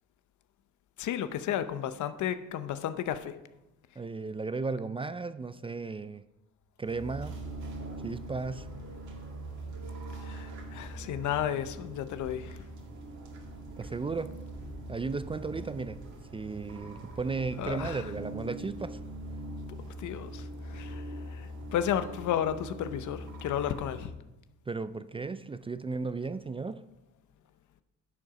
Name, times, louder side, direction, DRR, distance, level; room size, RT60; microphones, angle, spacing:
voice 1, 1.0-3.4 10.2-12.6 17.6-18.1 20.0-24.1, left 10 dB, 75° left, 11 dB, 0.8 m, -33 dB
voice 2, 4.0-6.2 6.8-7.4 8.0-8.7 13.8-14.4 14.9-16.1 16.3-19.0 24.7-26.8, right 4 dB, 20° right, 13 dB, 0.3 m, -35 dB
sound 1, 6.8-24.1, right 1 dB, 70° right, 2.2 m, -42 dB
10.5 x 6.4 x 4.9 m, 0.94 s
cardioid pair, 90°, 30 cm